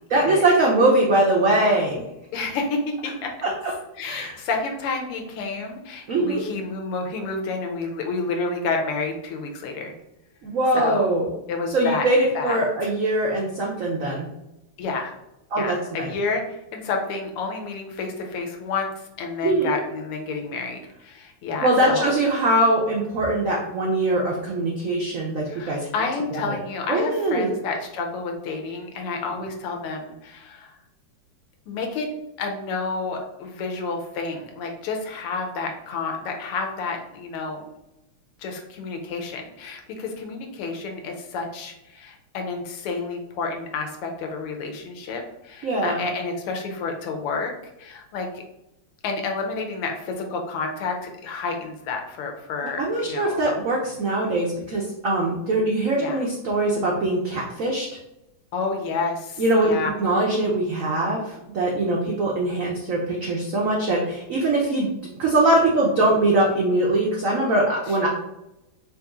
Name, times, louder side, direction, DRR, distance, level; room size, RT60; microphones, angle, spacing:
voice 1, 0.1-2.0 3.4-3.7 4.1-4.4 6.1-6.4 10.4-11.3 11.7-14.3 15.5-16.1 19.4-19.8 21.6-25.9 26.3-26.6 26.9-27.5 45.6-46.0 52.8-57.9 59.4-59.7 60.0-64.9 65.2-68.1, right 2 dB, 85° right, -3 dB, 0.7 m, -22 dB
voice 2, 2.3-3.3 4.0-9.9 10.7-11.1 11.5-12.0 12.3-12.9 14.8-15.1 15.6-22.1 25.5-30.8 31.7-32.1 32.4-37.6 38.4-47.5 47.8-48.4 49.0-53.6 55.9-56.2 58.5-60.0 67.9-68.1, left 4 dB, 85° left, 3 dB, 1.7 m, -30 dB
4.2 x 3.0 x 3.6 m, 0.90 s
omnidirectional pair, 2.4 m